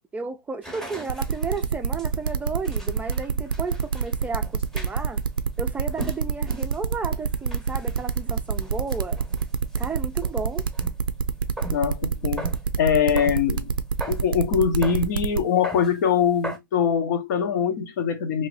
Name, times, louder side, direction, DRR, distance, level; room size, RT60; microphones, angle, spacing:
voice 1, 0.1-5.2 5.6-9.2 9.8-10.7, right 4 dB, 15° right, 0.4 m, -33 dB
sound 1, 0.6-11.0 11.3-11.9 12.2-13.5 14.0-14.3 14.8-15.1 15.4-16.0 16.4-16.6, right 1 dB, ahead, 0.9 m, -40 dB
sound 2, 1.1-15.4, right 6 dB, 90° right, 0.4 m, -25 dB
voice 2, 11.7-12.5 12.8-13.7 14.1-18.5, left 7 dB, 60° left, 0.8 m, -23 dB
2.8 x 2.6 x 3.0 m
hypercardioid pair, 105°, 11 cm